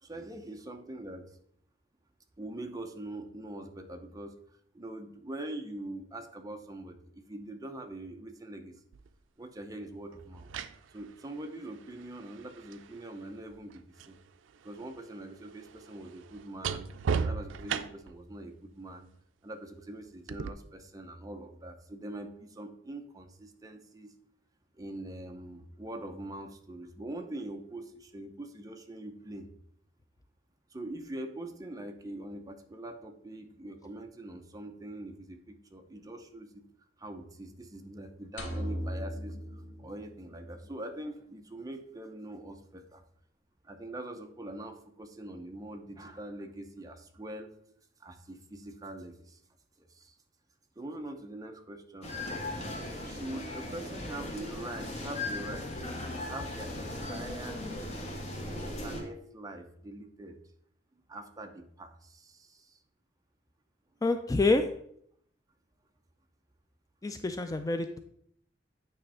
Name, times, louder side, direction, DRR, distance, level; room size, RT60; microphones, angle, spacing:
voice 1, 0.0-1.3 2.4-4.4 4.7-8.8 9.4-10.5 10.9-14.2 14.6-16.9 17.2-19.1 19.4-24.1 24.7-29.5 30.7-36.7 37.0-43.0 43.6-47.5 48.0-49.4 49.8-50.2 50.8-52.1 53.0-57.6 58.5-60.4 61.1-62.8, right 1 dB, 20° right, 5 dB, 0.7 m, -43 dB
sound 1, 8.9-9.1 10.2-14.2 14.5-18.2 20.3-20.5, right 6 dB, 85° right, 0.4 m, -37 dB
sound 2, 38.4-40.7, equal, 75° left, 1.4 m, -38 dB
sound 3, 52.0-59.0, left 1 dB, 35° left, 1.5 m, -38 dB
voice 2, 64.0-64.7 67.0-68.0, left 2 dB, 20° left, 8 dB, 0.3 m, -27 dB
9.0 x 3.2 x 5.6 m, 0.68 s
head